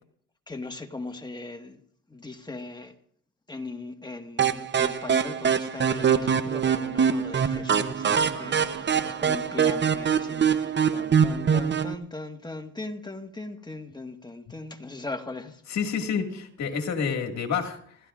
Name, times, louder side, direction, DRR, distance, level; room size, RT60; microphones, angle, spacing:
voice 1, 0.5-1.8 2.1-2.9 3.5-15.6, left 2 dB, 15° left, 1.6 m, -39 dB
sound 1, 4.4-11.9, right 7 dB, 35° right, 0.8 m, -24 dB
voice 2, 15.7-18.0, left 6 dB, 65° left, 2.1 m, -29 dB
27.0 x 14.0 x 2.5 m
cardioid pair, 90°, 30 cm